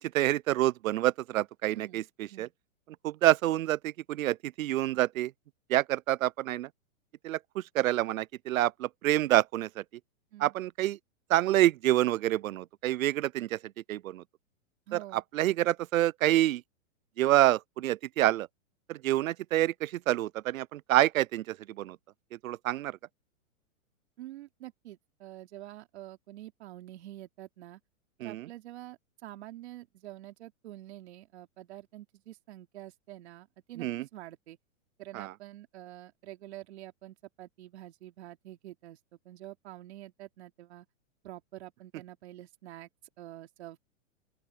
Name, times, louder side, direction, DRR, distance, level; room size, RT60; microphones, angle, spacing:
voice 1, 0.0-2.5 3.0-5.3 5.7-6.7 7.2-9.8 10.4-11.0 11.3-13.6 13.9-14.2 14.9-16.6 17.2-18.5 18.9-22.0 22.4-23.0 28.2-28.5 33.8-34.1 35.1-35.3, right 14 dB, 75° right, 0.6 m, -27 dB
voice 2, 1.7-2.0 2.3-2.5 10.3-10.5 14.9-15.2 24.2-27.8 28.2-34.6 35.0-39.0 39.2-40.9 41.2-42.9 43.2-43.8, right 14 dB, 55° right, 3.2 m, -47 dB
open air
hypercardioid pair, 160°, 41 cm